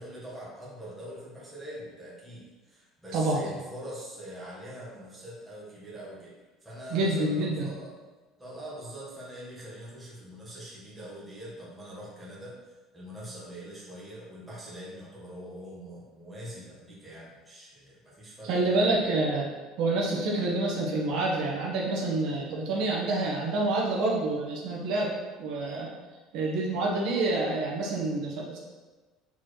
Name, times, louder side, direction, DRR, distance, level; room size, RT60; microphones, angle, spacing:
voice 1, 0.0-6.3 6.6-7.9 8.4-19.1, right 1 dB, 5° right, -7 dB, 1.4 m, -43 dB
voice 2, 3.1-3.4 6.9-7.7 18.4-19.5 19.8-25.1 25.4-25.9 26.3-28.6, right 2 dB, 55° right, -3 dB, 1.2 m, -27 dB
7.2 x 4.2 x 3.2 m, 1.2 s
cardioid pair, 175°, 0 cm